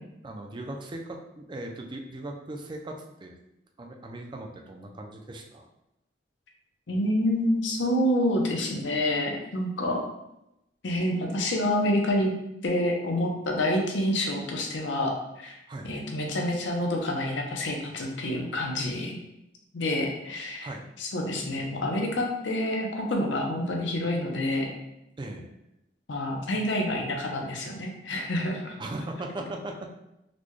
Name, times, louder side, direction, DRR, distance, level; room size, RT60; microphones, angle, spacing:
voice 1, 0.2-3.4 3.8-5.7 15.7-15.9 20.6-20.9 25.2-25.5 28.8-29.7, right 1 dB, 25° right, 2 dB, 0.4 m, -38 dB
voice 2, 6.9-10.0 10.8-12.3 12.6-15.6 15.8-19.2 19.7-20.7 21.0-24.7 26.1-28.8, left 1 dB, 80° left, 1 dB, 0.7 m, -28 dB
4.0 x 2.2 x 3.1 m, 0.87 s
head